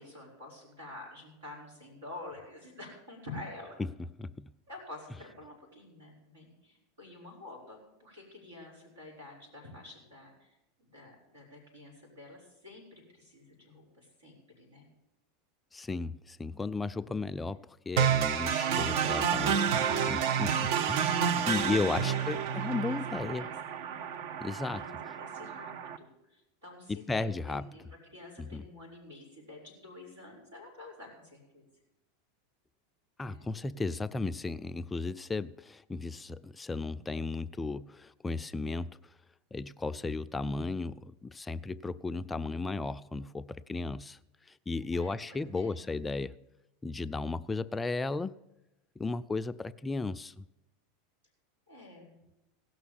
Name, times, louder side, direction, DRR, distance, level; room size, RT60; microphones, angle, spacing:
voice 1, 0.0-3.8 4.7-10.5 10.8-14.9 21.4-21.7 22.1-23.0 23.3-23.5 24.6-31.6 33.2-33.4 44.7-45.8 51.7-52.2, left 2 dB, 85° right, 5.4 m, -49 dB
voice 2, 4.2-4.5 15.7-23.5 24.4-24.9 26.9-27.7 28.4-28.6 33.2-39.0 39.5-44.2 44.5-46.3 46.8-48.3 49.0-50.4, left 3 dB, 15° left, 0.4 m, -35 dB
sound 1, 18.0-26.0, right 7 dB, 60° right, 0.7 m, -30 dB
17.0 x 6.2 x 7.2 m
hypercardioid pair, 90°, 0 cm